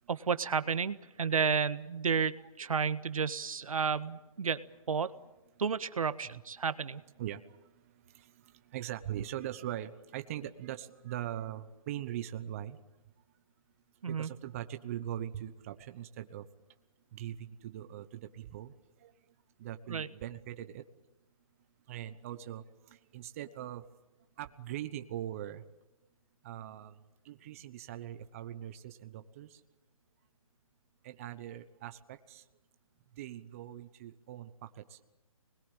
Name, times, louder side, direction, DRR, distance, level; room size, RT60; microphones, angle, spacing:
voice 1, 0.1-4.6 4.9-5.1 5.6-7.0 14.0-14.3 19.9-20.1, right 6 dB, 75° right, 13 dB, 1.5 m, -31 dB
voice 2, 8.7-12.8 14.1-16.4 17.1-18.7 19.0-19.1 19.6-20.8 21.9-22.6 23.1-23.8 24.4-25.6 26.4-27.0 27.2-29.6 31.0-32.4 33.2-35.0, right 12 dB, 25° right, 9 dB, 1.0 m, -41 dB
26.5 x 21.0 x 9.0 m, 1.0 s
hypercardioid pair, 165°, 18 cm